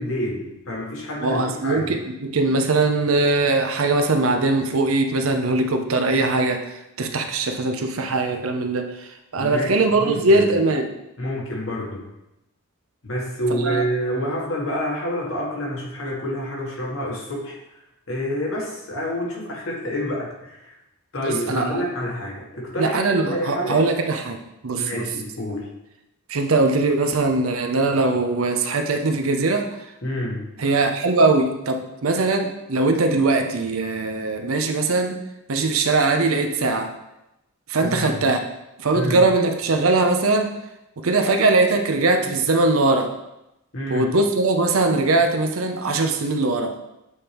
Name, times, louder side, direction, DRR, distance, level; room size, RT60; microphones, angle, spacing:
voice 1, 0.0-2.0 9.4-10.5 11.2-12.1 13.0-17.6 18.1-20.8 21.1-23.8 24.8-25.7 30.0-30.5 37.8-38.3 38.9-39.3 43.7-44.1, equal, 65° left, -3 dB, 1.8 m, -28 dB
voice 2, 1.2-9.1 9.3-10.9 13.5-13.8 21.2-21.8 22.8-24.4 24.6-25.1 26.3-29.7 30.6-35.2 35.5-36.9 37.7-38.4 38.8-40.5 41.0-43.1 43.9-46.7, right 3 dB, 75° right, 6 dB, 0.7 m, -21 dB
8.2 x 3.5 x 4.4 m, 0.90 s
head